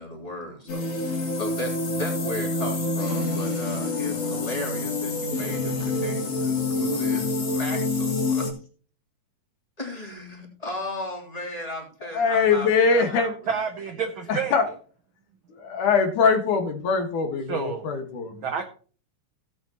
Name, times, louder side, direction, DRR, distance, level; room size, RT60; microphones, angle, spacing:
voice 1, 0.0-8.4 9.8-13.3, left 1 dB, 10° left, -2 dB, 3.0 m, -36 dB
sound 1, 0.7-8.5, left 3 dB, 55° left, 3.3 m, -27 dB
voice 2, 12.1-13.3 14.3-14.6 15.6-18.3, left 5 dB, 75° left, 5 dB, 3.1 m, -22 dB
voice 3, 13.5-14.5 17.5-17.9 18.4-18.7, right 6 dB, 80° right, 6 dB, 1.1 m, -29 dB
16.5 x 8.7 x 3.0 m, 0.41 s
omnidirectional pair, 3.6 m